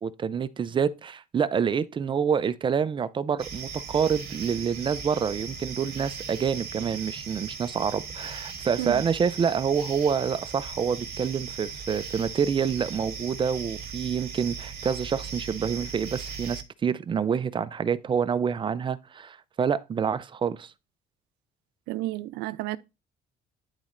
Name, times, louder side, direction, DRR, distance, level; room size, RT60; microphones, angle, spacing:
voice 1, 0.0-20.7, right 7 dB, 30° right, 0.4 m, -27 dB
sound 1, 3.4-16.6, right 6 dB, 65° right, 1.5 m, -38 dB
voice 2, 21.9-22.8, right 17 dB, 90° right, 0.4 m, -31 dB
10.5 x 4.1 x 2.5 m
cardioid pair, 110°, 17 cm